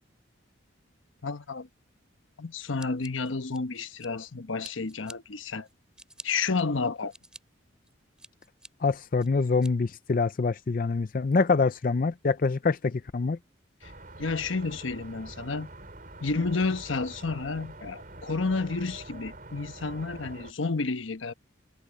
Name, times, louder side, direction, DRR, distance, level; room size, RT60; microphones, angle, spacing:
voice 1, 1.2-1.7 2.4-5.7 6.2-7.1 13.8-13.9 14.2-15.7 16.2-21.3, left 4 dB, 80° left, 1.1 m, -31 dB
Scissors, 2.8-4.3 4.6-5.2 5.7-6.3 6.8-7.4 7.9-8.7 9.2-9.7, right 1 dB, 5° right, 2.7 m, -48 dB
voice 2, 8.8-13.4, left 4 dB, 45° left, 0.4 m, -25 dB
sound 1, 13.8-20.5, right 2 dB, 45° right, 4.3 m, -45 dB
head